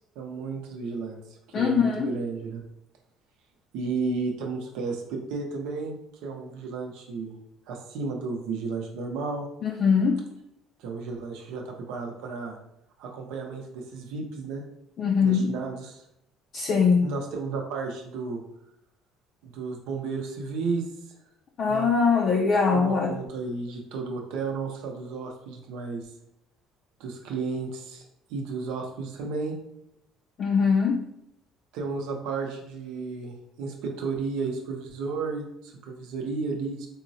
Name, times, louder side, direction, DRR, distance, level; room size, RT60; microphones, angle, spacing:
voice 1, 0.2-1.2 1.5-2.6 3.7-7.4 7.7-9.5 10.8-12.6 13.0-14.6 15.2-16.0 17.0-18.4 19.4-20.8 21.7-21.9 22.7-26.1 27.0-28.0 28.3-29.6 31.7-36.9, right 4 dB, 85° right, 1 dB, 0.6 m, -33 dB
voice 2, 1.5-2.1 9.6-10.2 15.0-15.5 16.5-17.0 21.6-23.1 30.4-31.0, left 5 dB, 45° left, 0 dB, 0.4 m, -22 dB
3.8 x 2.0 x 2.6 m, 0.77 s
cardioid pair, 115°, 0 cm